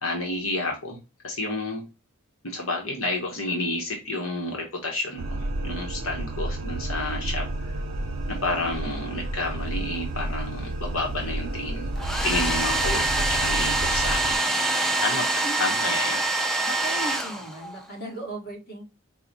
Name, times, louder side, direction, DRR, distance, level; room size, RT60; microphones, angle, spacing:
voice 1, 0.0-1.0 1.2-1.9 2.4-7.7 8.3-11.9 12.2-14.6 15.0-16.2, left 2 dB, 85° left, 1 dB, 0.9 m, -30 dB
sound 1, 5.2-14.4, right 1 dB, 85° right, 0.6 m, -31 dB
sound 2, 6.4-13.4, equal, 20° left, 0.8 m, -43 dB
Domestic sounds home sounds, 12.0-17.8, right 2 dB, ahead, 0.4 m, -25 dB
voice 2, 16.6-18.9, right 2 dB, 50° left, 0 dB, 1.4 m, -36 dB
4.7 x 2.1 x 3.9 m, 0.29 s
head